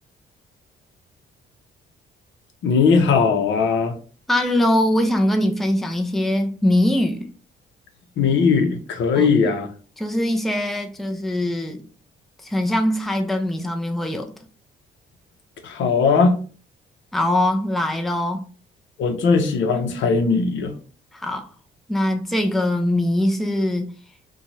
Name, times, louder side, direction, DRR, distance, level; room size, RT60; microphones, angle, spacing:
voice 1, 2.6-4.0 8.2-9.7 15.6-16.4 19.0-20.7, left 5 dB, 70° left, 0.7 m, -19 dB
voice 2, 4.3-7.3 9.1-9.3 10.0-11.8 12.4-14.3 17.1-18.4 21.1-21.5 21.9-23.9, left 1 dB, ahead, 0.4 m, -22 dB
2.6 x 2.2 x 3.0 m
cardioid pair, 90°, 20 cm